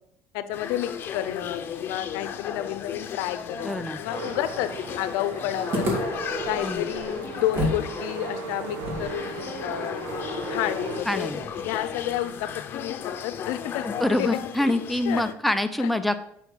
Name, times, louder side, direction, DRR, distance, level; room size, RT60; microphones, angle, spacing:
voice 1, 0.3-4.7 5.0-6.0 6.5-10.0 10.5-11.3 11.6-13.9 14.2-14.4 15.1-15.2 15.8-15.9, left 13 dB, 80° left, 11 dB, 0.7 m, -30 dB
sound 1, 0.5-15.3, left 8 dB, 45° left, 0.9 m, -35 dB
voice 2, 3.6-4.0 6.6-6.8 11.1-11.4 13.8-16.3, left 1 dB, ahead, 8 dB, 0.7 m, -26 dB
sound 2, 4.1-11.0, right 4 dB, 85° right, 1.2 m, -36 dB
sound 3, 5.7-7.9 8.1-8.2 8.8-11.9, equal, 45° right, 2.9 m, -33 dB
9.0 x 5.8 x 4.6 m, 0.73 s
cardioid pair, 115°, 5 cm